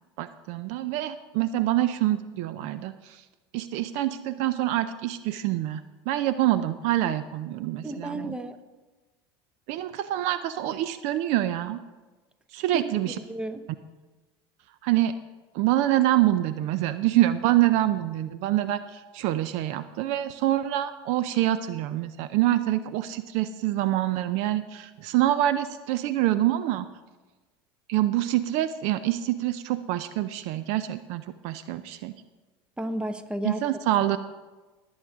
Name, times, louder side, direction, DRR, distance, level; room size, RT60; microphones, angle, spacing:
voice 1, 0.2-3.2 3.5-8.3 9.7-11.8 12.5-13.2 14.8-15.1 15.5-26.9 27.9-32.1 33.4-34.2, right 14 dB, 60° right, 13 dB, 0.5 m, -26 dB
voice 2, 7.8-8.6 12.7-12.8 13.1-13.6 32.8-33.6, right 1 dB, 5° right, 10 dB, 1.0 m, -32 dB
19.5 x 8.1 x 3.6 m, 1.2 s
hypercardioid pair, 85°, 13 cm